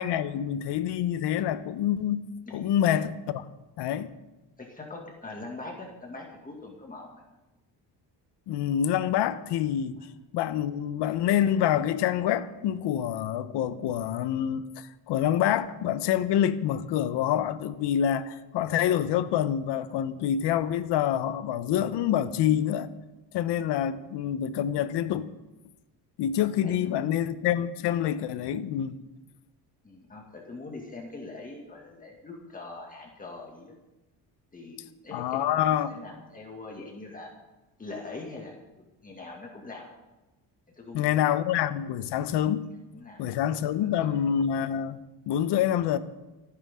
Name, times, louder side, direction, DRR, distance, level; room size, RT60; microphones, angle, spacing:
voice 1, 0.0-3.4 3.8-4.1 8.5-10.0 10.3-22.9 23.3-25.3 26.2-29.0 35.1-35.9 40.9-42.6 43.2-46.0, left 10 dB, 80° left, 1.0 m, -27 dB
voice 2, 4.6-7.2 9.9-10.1 26.6-27.4 29.8-33.7 34.5-37.3 37.8-40.0 40.8-41.4 42.9-43.4 43.8-44.3, left 3 dB, 20° left, 2.2 m, -43 dB
29.0 x 10.0 x 3.8 m
cardioid pair, 150°, 41 cm